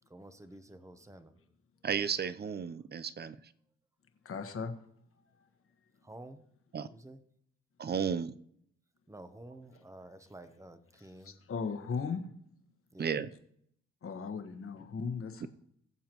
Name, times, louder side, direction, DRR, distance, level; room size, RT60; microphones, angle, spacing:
voice 1, 0.1-1.4 6.0-6.4 6.9-7.2 9.1-11.4 12.9-13.2, right 1 dB, 10° right, 10 dB, 0.9 m, -51 dB
voice 2, 1.8-3.4 6.7-6.9 7.8-8.3 13.0-13.3 15.4-15.5, right 7 dB, 35° right, 14 dB, 0.6 m, -33 dB
voice 3, 4.2-4.7 11.2-12.2 14.0-15.5, left 5 dB, 45° left, 7 dB, 1.4 m, -37 dB
21.0 x 7.1 x 3.0 m, 0.71 s
cardioid pair, 90°, 30 cm